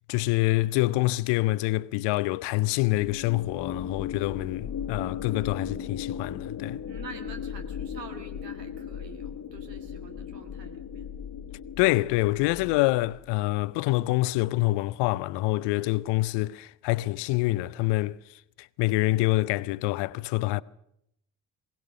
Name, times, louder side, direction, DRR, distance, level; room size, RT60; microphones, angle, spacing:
voice 1, 0.1-6.8 11.8-18.2 18.6-20.6, left 19 dB, 60° left, 0.7 m, -26 dB
sound 1, 2.9-13.3, left 8 dB, 45° left, 1.5 m, -37 dB
voice 2, 6.9-11.1, right 4 dB, 85° right, 1.8 m, -46 dB
21.0 x 18.5 x 6.5 m
figure-of-eight pair, 40°, 48 cm